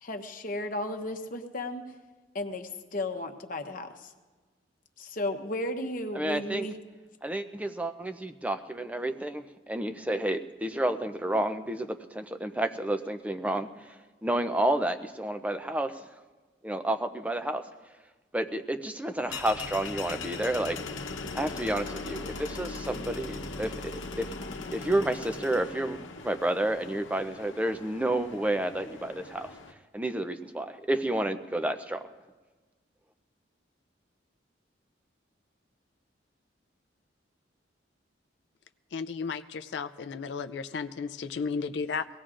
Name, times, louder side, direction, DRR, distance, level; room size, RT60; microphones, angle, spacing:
voice 1, 0.0-1.8 2.3-4.1 5.0-6.7, left 1 dB, 45° left, 5 dB, 0.9 m, -34 dB
voice 2, 6.1-6.7 7.2-13.7 14.2-16.1 16.6-17.6 18.3-20.8 21.3-24.3 24.7-26.0 26.2-29.5 29.9-32.0, right 1 dB, 5° right, 8 dB, 0.5 m, -30 dB
sound 1, 19.3-29.7, left 3 dB, 80° left, 0.9 m, -40 dB
voice 3, 38.9-42.1, left 5 dB, 65° left, 10 dB, 0.4 m, -34 dB
23.5 x 17.5 x 2.5 m, 1.3 s
head